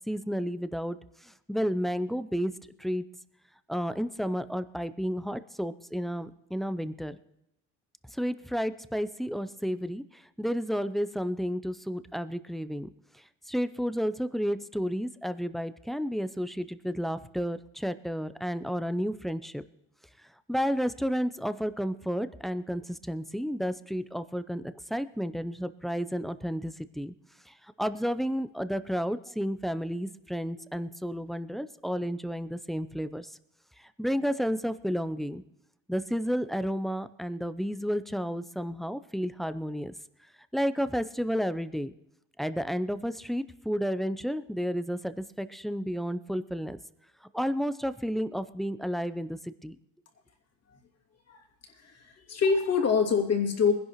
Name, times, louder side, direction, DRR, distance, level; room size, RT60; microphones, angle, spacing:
voice 1, 0.1-1.0 1.2-2.5 2.8-3.0 3.7-7.2 8.1-12.9 13.5-19.6 20.5-27.1 27.5-33.4 33.8-35.4 35.9-39.9 40.5-41.9 42.4-46.8 47.3-49.8, equal, ahead, 12 dB, 0.6 m, -31 dB
voice 2, 51.8-53.7, left 6 dB, 45° left, 1 dB, 2.7 m, -25 dB
21.0 x 11.0 x 3.1 m, 0.81 s
supercardioid pair, 75°, 35 cm